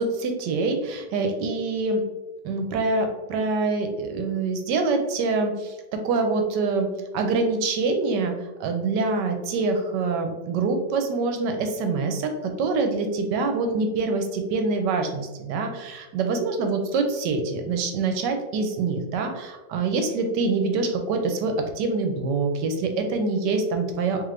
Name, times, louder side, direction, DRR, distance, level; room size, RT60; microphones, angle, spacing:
voice 1, 0.0-2.0 2.4-6.9 7.1-8.3 8.6-24.2, right 3 dB, 80° right, 5 dB, 1.3 m, -25 dB
3.7 x 3.1 x 3.2 m, 1.1 s
omnidirectional pair, 1.9 m